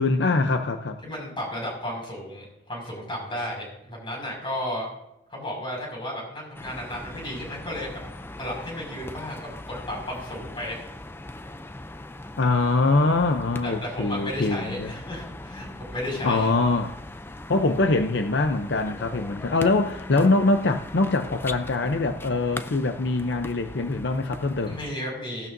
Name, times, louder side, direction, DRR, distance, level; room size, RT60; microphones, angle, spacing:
voice 1, 0.0-1.0 12.4-14.9 16.2-16.9 17.5-24.8, left 3 dB, 65° left, 7 dB, 0.6 m, -23 dB
voice 2, 1.0-4.9 5.3-8.0 8.4-10.8 13.6-16.5 24.7-25.5, left 1 dB, 30° left, -1 dB, 5.6 m, -33 dB
sound 1, 6.5-24.9, left 1 dB, 10° left, 0.4 m, -40 dB
16.5 x 12.0 x 2.6 m, 0.86 s
head